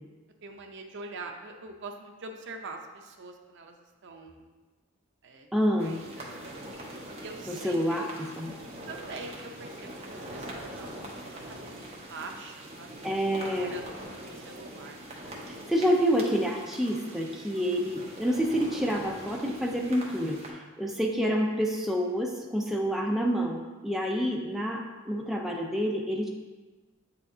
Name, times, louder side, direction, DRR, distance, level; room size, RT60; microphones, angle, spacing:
voice 1, 0.4-3.8 4.0-4.4 5.2-5.5 5.8-6.3 7.1-8.1 8.9-12.9 13.3-13.9 14.2-15.0, right 3 dB, 60° right, 3 dB, 0.6 m, -44 dB
voice 2, 5.5-6.0 7.5-8.5 13.0-13.7 15.5-26.3, equal, ahead, -1 dB, 0.5 m, -28 dB
sound 1, 5.8-20.5, right 1 dB, 30° right, 1.0 m, -43 dB
8.4 x 4.2 x 2.7 m, 1.3 s
head